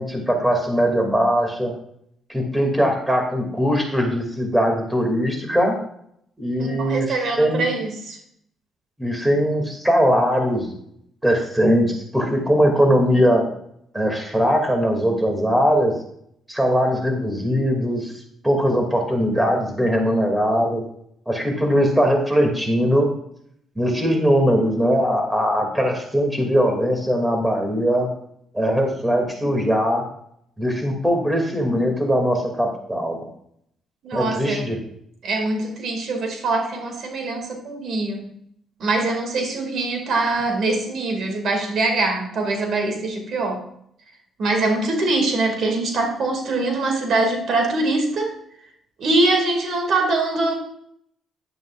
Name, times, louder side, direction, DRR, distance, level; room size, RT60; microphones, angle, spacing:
voice 1, 0.0-1.7 2.3-5.8 6.4-7.6 9.0-10.8 11.2-13.5 13.9-15.9 16.5-18.1 18.4-20.8 21.3-23.1 23.8-28.1 28.5-30.0 30.6-33.2 34.1-34.8, equal, 10° right, 2 dB, 2.6 m, -20 dB
voice 2, 6.6-8.2 34.0-34.6 35.2-38.3 38.8-43.6 44.4-48.4 49.0-50.5, right 2 dB, 65° right, 3 dB, 2.4 m, -23 dB
11.0 x 11.0 x 2.5 m, 0.70 s
cardioid pair, 90°, 0 cm